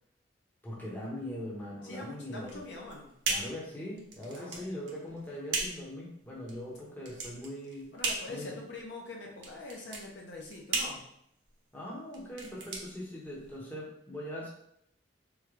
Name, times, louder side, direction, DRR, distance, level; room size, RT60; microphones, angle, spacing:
voice 1, 0.6-2.6 3.3-7.9 8.3-8.6 11.7-14.5, left 1 dB, 10° left, -6 dB, 0.7 m, -41 dB
voice 2, 1.8-3.1 4.3-4.8 7.9-11.0, left 2 dB, 60° left, -1 dB, 0.6 m, -44 dB
sound 1, 2.4-13.7, right 3 dB, 65° right, 0.6 m, -38 dB
3.5 x 2.2 x 3.0 m, 0.72 s
head